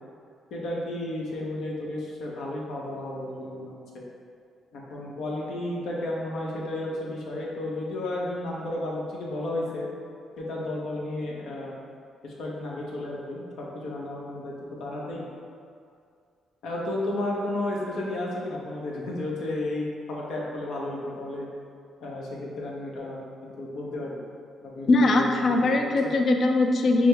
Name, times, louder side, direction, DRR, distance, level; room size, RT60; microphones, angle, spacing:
voice 1, 0.5-3.8 4.7-9.9 10.4-11.7 12.2-14.5 14.8-15.2 16.6-21.5 22.0-24.2 24.6-26.2, left 1 dB, 75° left, -4 dB, 0.9 m, -33 dB
voice 2, 24.9-27.1, left 2 dB, 50° left, 4 dB, 0.4 m, -21 dB
6.0 x 2.0 x 3.4 m, 2.3 s
cardioid pair, 90°, 0 cm